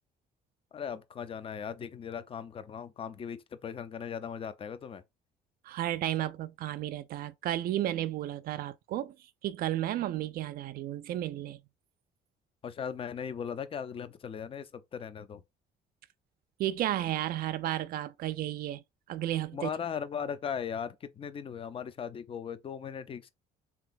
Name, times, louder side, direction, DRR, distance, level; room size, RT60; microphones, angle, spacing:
voice 1, 0.7-5.0 12.6-15.4 19.5-23.3, left 7 dB, 35° left, 0.5 m, -38 dB
voice 2, 5.6-9.1 9.4-11.6 16.6-19.7, right 13 dB, 60° right, 0.4 m, -33 dB
3.4 x 2.9 x 3.8 m
cardioid pair, 110°, 17 cm